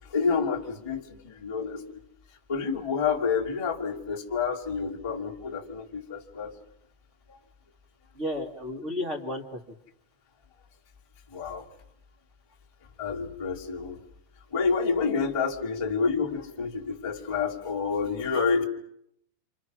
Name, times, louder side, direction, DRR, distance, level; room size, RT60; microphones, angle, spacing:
voice 1, 0.1-2.0 2.5-6.5 7.3-7.4 11.3-11.7 13.0-14.0 14.5-18.6, left 5 dB, 15° left, -3 dB, 1.2 m, -29 dB
voice 2, 8.1-9.6, left 1 dB, 40° right, 0 dB, 1.0 m, -32 dB
28.5 x 28.0 x 6.2 m, 0.74 s
omnidirectional pair, 5.6 m